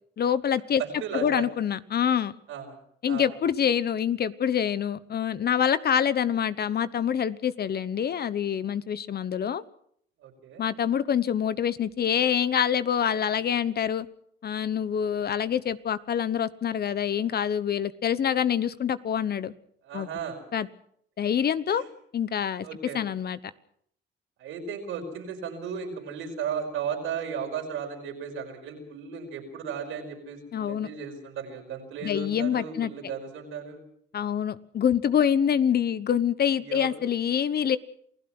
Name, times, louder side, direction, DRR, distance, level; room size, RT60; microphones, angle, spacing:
voice 1, 0.2-0.8 1.1-2.3 3.0-9.6 10.6-14.1 14.4-19.5 19.9-20.1 20.5-20.7 21.2-21.8 22.1-22.7 22.9-23.4 30.5-30.9 32.0-32.9 34.1-37.8, left 8 dB, 50° left, 16 dB, 1.1 m, -26 dB
voice 2, 0.8-1.5 2.5-2.8 3.1-3.3 10.2-10.6 19.8-20.4 21.7-21.8 22.6-23.0 24.4-33.8 36.5-37.0, right 6 dB, 85° right, 2 dB, 5.2 m, -35 dB
28.0 x 16.5 x 6.2 m, 0.66 s
cardioid pair, 90°, 20 cm